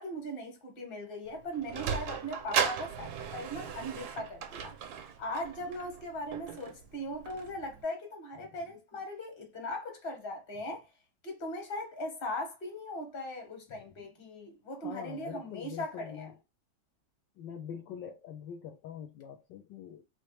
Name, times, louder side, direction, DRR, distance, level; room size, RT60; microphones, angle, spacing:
voice 1, 0.0-4.7 5.2-10.9 11.2-16.3, left 1 dB, 35° left, 1.1 m, -39 dB
Sliding door, 1.3-7.8, right 7 dB, 75° right, 0.9 m, -37 dB
voice 2, 14.7-16.3 17.4-20.0, left 8 dB, 75° left, 1.1 m, -44 dB
3.2 x 3.1 x 3.2 m
omnidirectional pair, 2.2 m